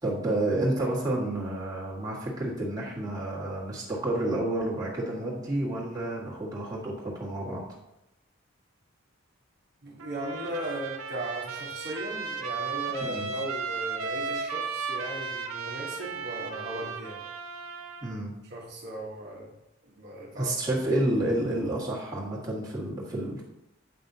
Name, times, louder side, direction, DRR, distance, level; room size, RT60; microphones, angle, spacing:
voice 1, 0.0-7.6 13.0-13.3 18.0-18.3 20.4-23.4, right 1 dB, 15° right, -5 dB, 1.5 m, -30 dB
voice 2, 9.8-17.2 18.5-19.6 19.8-20.5, right 1 dB, 50° right, -3 dB, 1.1 m, -37 dB
Trumpet, 10.0-18.2, right 5 dB, 75° right, 0.7 m, -35 dB
7.8 x 5.4 x 2.7 m, 0.89 s
head